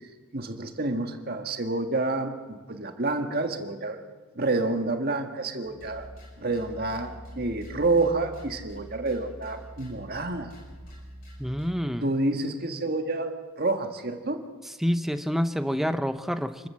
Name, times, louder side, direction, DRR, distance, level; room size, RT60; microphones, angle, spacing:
voice 1, 0.3-4.0 4.4-6.1 6.4-10.5 12.0-14.4, right 2 dB, 45° right, 5 dB, 1.7 m, -28 dB
sound 1, 5.6-11.8, equal, 40° left, 7.4 m, -45 dB
voice 2, 11.4-12.1 14.8-16.7, equal, ahead, 10 dB, 0.7 m, -27 dB
28.0 x 13.5 x 7.5 m, 1.4 s
head